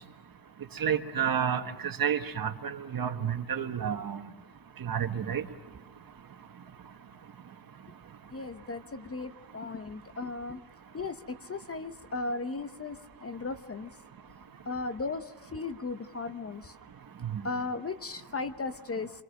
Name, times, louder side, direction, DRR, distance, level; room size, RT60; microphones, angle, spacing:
voice 1, 0.7-4.2 4.8-5.5 17.2-17.4, right 8 dB, 50° right, 6 dB, 1.6 m, -30 dB
voice 2, 8.3-10.6 10.9-13.9 14.7-16.7 17.4-19.1, left 3 dB, 30° left, 10 dB, 0.9 m, -36 dB
27.0 x 23.0 x 6.5 m, 1.1 s
cardioid pair, 110°, 45 cm